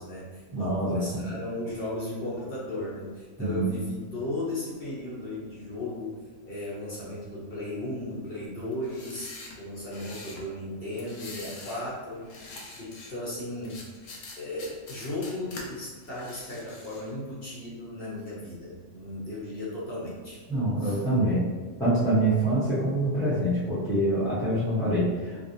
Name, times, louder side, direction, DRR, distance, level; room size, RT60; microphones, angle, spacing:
voice 1, 0.0-6.2 6.5-12.5 12.8-13.8 14.4-20.4 20.8-21.0, left 1 dB, 50° left, -7 dB, 1.1 m, -36 dB
voice 2, 0.5-1.0 3.4-3.8 20.5-21.5 21.8-25.4, right 1 dB, 5° left, -12 dB, 0.7 m, -25 dB
sound 1, 8.7-10.4 11.0-11.9 12.2-13.1 13.6-15.6 16.0-17.1, left 3 dB, 75° left, 1.0 m, -44 dB
4.8 x 2.0 x 2.7 m, 1.4 s
omnidirectional pair, 1.3 m